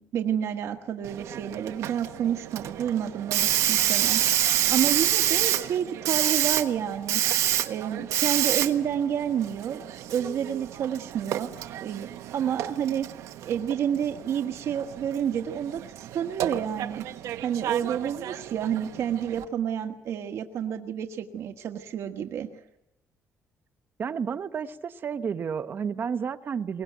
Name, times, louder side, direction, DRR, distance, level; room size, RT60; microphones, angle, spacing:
voice 1, 0.0-7.2 7.7-11.5 11.8-13.1 13.4-17.0 17.4-22.5, right 9 dB, 65° right, 5 dB, 1.4 m, -29 dB
Hiss, 1.0-19.4, right 12 dB, 90° right, 1.2 m, -29 dB
voice 2, 24.0-26.8, right 6 dB, 45° right, 10 dB, 0.9 m, -31 dB
22.5 x 19.0 x 9.3 m, 0.88 s
cardioid pair, 125°, 5 cm